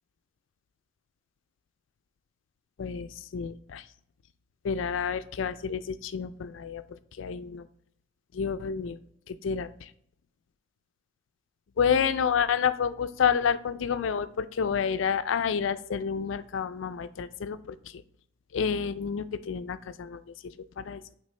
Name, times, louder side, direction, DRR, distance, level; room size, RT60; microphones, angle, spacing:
voice 1, 2.8-3.8 4.6-7.7 8.3-9.0 9.3-9.9 11.8-17.8 18.5-20.2 20.8-21.0, left 7 dB, 75° left, 13 dB, 0.4 m, -29 dB
8.8 x 3.4 x 3.2 m, 0.69 s
head